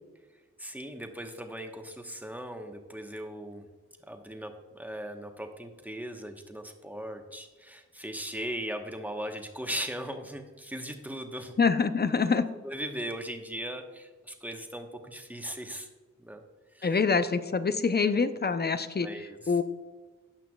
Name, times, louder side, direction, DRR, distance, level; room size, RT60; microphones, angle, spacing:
voice 1, 0.6-3.7 4.1-11.5 12.6-15.9 16.2-16.4 16.7-17.0 19.0-19.5, equal, 5° right, 4 dB, 1.1 m, -38 dB
voice 2, 11.6-12.4 16.8-19.1 19.5-19.6, left 5 dB, 35° left, 11 dB, 0.6 m, -25 dB
16.0 x 5.9 x 2.4 m, 1.3 s
cardioid pair, 50°, 30 cm